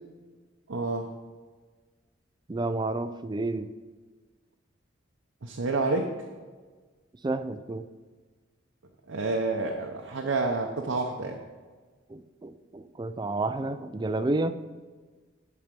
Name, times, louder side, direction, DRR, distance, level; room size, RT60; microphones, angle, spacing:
voice 1, 0.7-1.1 5.4-6.1 9.1-11.4, right 3 dB, 90° right, 2 dB, 0.7 m, -29 dB
voice 2, 2.5-3.7 7.2-7.9 12.1-14.6, right 2 dB, 20° right, 11 dB, 0.3 m, -30 dB
10.0 x 4.7 x 5.3 m, 1.4 s
head